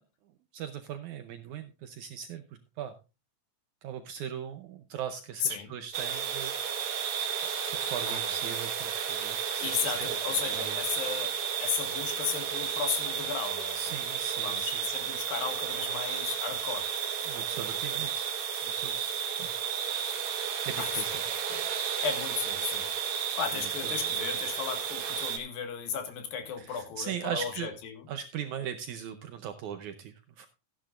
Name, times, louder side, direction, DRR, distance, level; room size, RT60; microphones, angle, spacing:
voice 1, 0.5-2.4 2.8-2.9 3.8-6.9 7.6-10.2 10.4-10.8 13.7-14.8 17.2-18.3 18.6-19.5 20.7-21.1 23.5-23.9 26.6-27.7 28.1-30.5, right 8 dB, 75° right, 8 dB, 1.8 m, -39 dB
sound 1, 5.9-25.4, right 8 dB, 60° right, 2.3 m, -32 dB
voice 2, 8.1-8.4 9.6-11.3 11.6-13.8 14.4-16.9 20.8-21.2 21.5-21.6 22.0-22.9 23.4-28.0, left 7 dB, 75° left, 6 dB, 3.4 m, -35 dB
15.0 x 10.5 x 2.5 m, 0.29 s
omnidirectional pair, 4.2 m